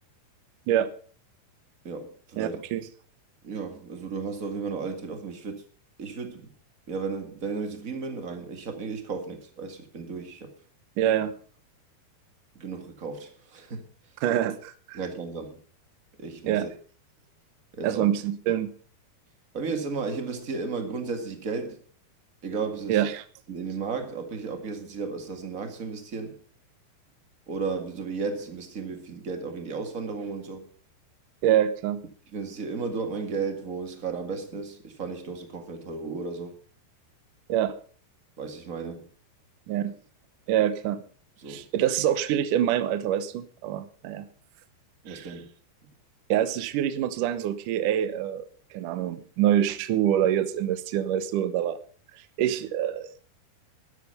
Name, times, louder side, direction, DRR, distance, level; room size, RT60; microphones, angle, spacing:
voice 1, 1.8-2.6 3.4-5.6 6.0-6.4 6.9-10.5 12.5-13.8 14.9-15.6 16.2-16.7 17.7-18.1 19.5-21.8 22.4-23.0 23.5-26.4 27.5-30.7 32.3-36.6 38.4-39.1 41.4-41.6 45.0-45.5, right 4 dB, 35° right, 1.5 m, -34 dB
voice 2, 2.4-2.8 11.0-11.4 14.2-15.0 16.5-16.7 17.8-18.7 22.9-23.2 31.4-32.0 37.5-37.7 39.7-40.0 40.5-41.0 41.5-44.3 45.1-45.3 46.3-48.4 48.7-51.8 52.4-53.2, right 11 dB, 70° right, 2.1 m, -25 dB
12.5 x 12.5 x 5.6 m
omnidirectional pair, 4.7 m